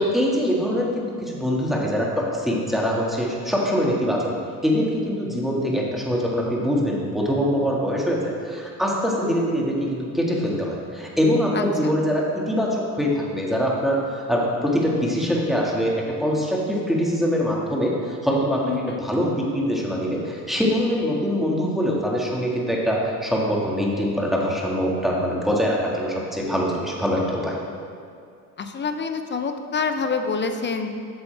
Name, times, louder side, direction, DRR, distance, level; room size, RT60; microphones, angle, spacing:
voice 1, 0.0-4.3 4.6-27.6, equal, ahead, -3 dB, 1.8 m, -23 dB
voice 2, 11.5-11.9 18.6-19.0 28.6-30.9, left 5 dB, 25° left, 7 dB, 0.6 m, -27 dB
8.9 x 6.8 x 3.4 m, 2.4 s
hypercardioid pair, 70°, 43 cm